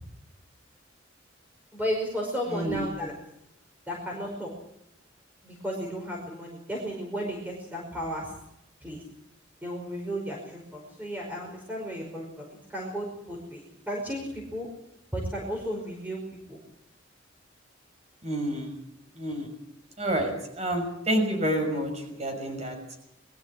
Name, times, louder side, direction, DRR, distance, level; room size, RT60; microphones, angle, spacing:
voice 1, 1.7-3.1 3.9-4.5 5.4-8.3 8.8-9.0 9.6-14.7 15.1-16.2 16.5-16.6, equal, 10° right, -1 dB, 5.2 m, -34 dB
voice 2, 2.5-2.8 18.2-18.7 19.2-19.5 20.0-20.3 20.6-23.0, right 1 dB, 35° right, 4 dB, 6.0 m, -29 dB
22.5 x 14.0 x 9.9 m, 0.80 s
head